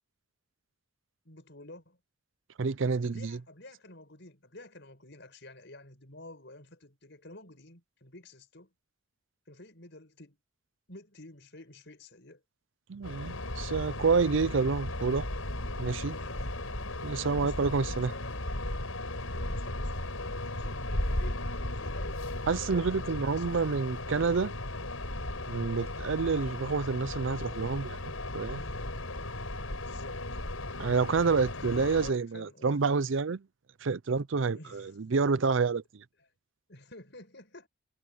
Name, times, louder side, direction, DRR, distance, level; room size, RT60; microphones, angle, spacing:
voice 1, 1.3-2.0 3.0-8.7 9.5-10.4 10.9-12.4 16.1-16.6 17.2-18.4 19.3-23.6 28.5-28.9 29.7-30.4 31.5-32.9 34.4-35.0 36.2-36.3 36.7-37.7, left 2 dB, 55° left, 7.0 m, -50 dB
voice 2, 2.6-3.4 12.9-15.3 15.8-16.2 17.0-18.1 22.5-24.5 25.5-28.6 30.8-33.4 33.8-36.0, right 4 dB, 65° right, 0.5 m, -28 dB
sound 1, 13.0-32.1, left 1 dB, 90° left, 5.8 m, -36 dB
head